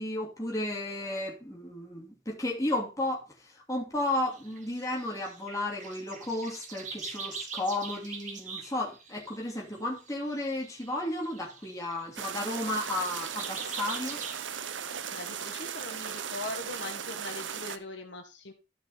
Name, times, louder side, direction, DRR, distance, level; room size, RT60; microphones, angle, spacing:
voice 1, 0.0-14.2, left 1 dB, 15° left, 2.9 m, -33 dB
sound 1, 4.1-14.4, right 5 dB, 40° right, 2.1 m, -43 dB
sound 2, 12.2-17.8, right 8 dB, 85° right, 0.9 m, -37 dB
voice 2, 15.1-18.5, left 2 dB, 75° left, 1.7 m, -41 dB
13.0 x 5.4 x 4.2 m
head